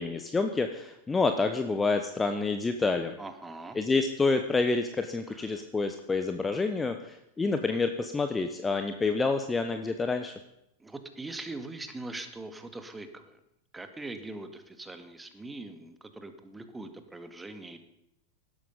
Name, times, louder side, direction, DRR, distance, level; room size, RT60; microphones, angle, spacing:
voice 1, 0.0-3.1 3.7-10.3, left 3 dB, 15° left, 7 dB, 1.1 m, -28 dB
voice 2, 3.2-3.8 5.3-5.6 10.8-13.4 13.7-17.8, right 2 dB, 10° right, 8 dB, 1.9 m, -42 dB
17.5 x 12.5 x 5.4 m, 0.81 s
figure-of-eight pair, 90°, 0 cm